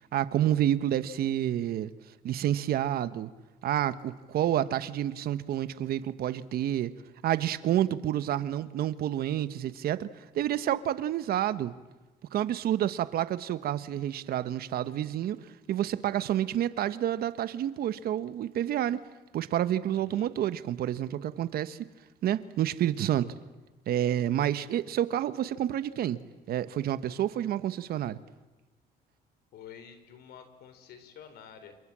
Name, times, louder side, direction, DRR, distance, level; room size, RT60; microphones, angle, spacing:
voice 1, 0.1-1.9 2.2-3.3 3.6-6.9 7.2-10.1 10.3-11.7 12.3-15.4 15.7-19.0 19.3-21.8 22.2-23.3 23.9-26.2 26.5-28.2, right 11 dB, 65° right, 14 dB, 1.3 m, -29 dB
voice 2, 19.9-20.3 29.5-31.8, left 8 dB, 70° left, 10 dB, 4.2 m, -49 dB
28.0 x 27.5 x 7.6 m, 1.1 s
cardioid pair, 110°, 17 cm